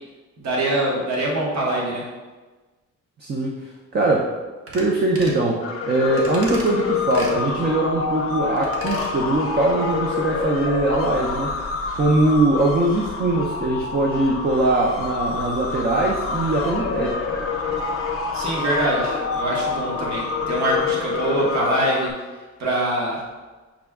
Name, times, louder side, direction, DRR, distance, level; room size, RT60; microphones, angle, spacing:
voice 1, 0.4-2.1 18.3-22.1 22.6-23.2, right 1 dB, 65° right, -4 dB, 1.2 m, -23 dB
voice 2, 3.2-4.4 4.7-11.5 12.0-17.2, right 2 dB, 35° right, -1 dB, 0.5 m, -21 dB
sound 1, 4.7-4.9 5.2-5.4 6.2-6.7 7.1-7.4 8.6-9.1 9.4-9.5, right 2 dB, 50° right, 0.9 m, -36 dB
sound 2, 5.6-22.1, left 5 dB, 50° left, 0.6 m, -27 dB
6.0 x 2.2 x 3.5 m, 1.3 s
cardioid pair, 135°, 30 cm